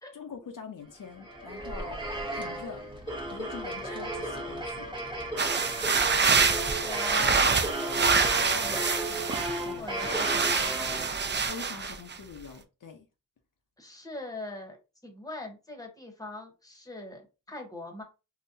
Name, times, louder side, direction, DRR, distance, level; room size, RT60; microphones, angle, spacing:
voice 1, 0.1-2.0 2.3-2.8 3.3-4.9 9.6-9.9 11.4-13.1, left 6 dB, 70° left, 0.6 m, -44 dB
sound 1, 1.0-11.5, right 1 dB, 15° right, 0.8 m, -35 dB
sound 2, 5.4-9.6 10.0-12.1, right 5 dB, 35° right, 0.4 m, -26 dB
voice 2, 6.5-7.4 7.8-11.4 11.7-11.9 13.8-14.8 15.0-17.2 17.5-18.0, left 2 dB, 10° left, 0.9 m, -42 dB
3.8 x 2.1 x 2.6 m
wide cardioid pair, 100°, 34 cm